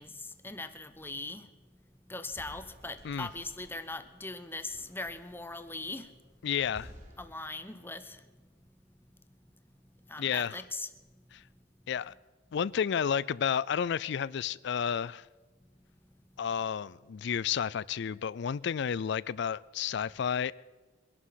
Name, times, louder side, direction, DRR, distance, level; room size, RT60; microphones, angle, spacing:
voice 1, 0.0-1.5 2.1-6.1 7.2-8.2 10.1-10.9, left 2 dB, 10° left, 0.8 m, -40 dB
sound 1, 2.3-7.3, equal, 40° right, 4.3 m, -54 dB
voice 2, 6.4-6.9 10.2-10.6 11.9-12.1 12.5-15.2 16.4-20.5, left 7 dB, 65° left, 0.4 m, -31 dB
22.5 x 11.0 x 5.7 m
head